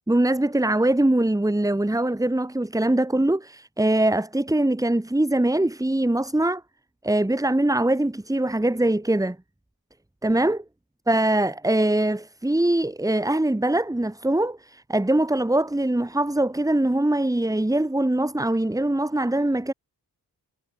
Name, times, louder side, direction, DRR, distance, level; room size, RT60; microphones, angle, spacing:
voice 1, 0.1-6.6 7.0-9.4 10.2-10.6 11.1-19.7, right 1 dB, 10° right, 2.8 m, -22 dB
wide cardioid pair, 175°, 38 cm